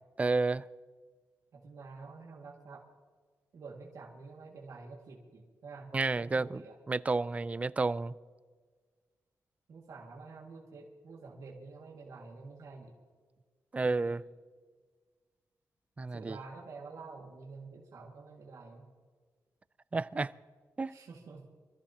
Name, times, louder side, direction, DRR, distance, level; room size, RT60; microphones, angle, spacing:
voice 1, 0.2-0.6 5.9-6.6 6.9-8.1 13.7-14.2 16.0-16.4 19.9-20.3 20.8-20.9, right 3 dB, 20° right, 0.3 m, -30 dB
voice 2, 1.5-2.9 3.5-6.8 9.7-12.9 13.8-14.2 16.1-18.9 20.9-21.4, right 4 dB, 60° right, 2.0 m, -49 dB
26.5 x 14.0 x 2.9 m
wide cardioid pair, 160°, 7 cm